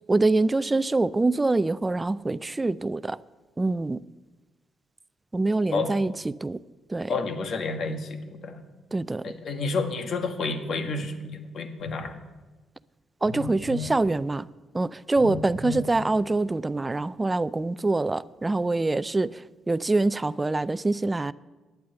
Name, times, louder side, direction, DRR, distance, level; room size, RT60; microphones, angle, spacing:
voice 1, 0.1-3.2 3.6-4.0 5.3-6.6 6.9-7.1 8.9-9.3 13.2-14.5 14.7-21.3, right 2 dB, 20° right, 0.4 m, -25 dB
voice 2, 7.1-8.6 9.2-12.2, left 3 dB, 60° left, 1.6 m, -30 dB
Telephone, 11.8-12.0 13.2-14.0 15.1-15.9, left 5 dB, 75° left, 5.0 m, -35 dB
10.5 x 8.5 x 8.9 m
cardioid pair, 90°, 0 cm